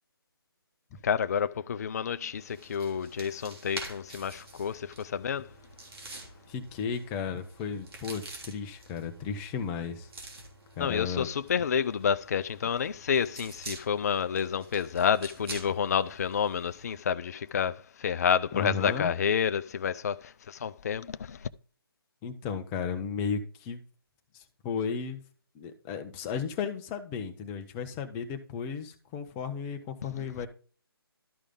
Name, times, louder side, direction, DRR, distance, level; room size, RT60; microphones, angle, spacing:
voice 1, 1.0-2.4 2.7-4.8 5.1-5.4 10.8-17.7 18.0-20.1 20.6-21.1, left 7 dB, 40° left, 0.4 m, -29 dB
sound 1, 2.3-17.0, right 2 dB, 70° right, 3.3 m, -47 dB
voice 2, 6.5-10.1 10.8-11.3 18.5-19.1 22.2-23.8 24.3-25.2 25.5-30.5, left 6 dB, 15° left, 0.8 m, -34 dB
12.5 x 4.9 x 3.7 m
figure-of-eight pair, 150°, 13 cm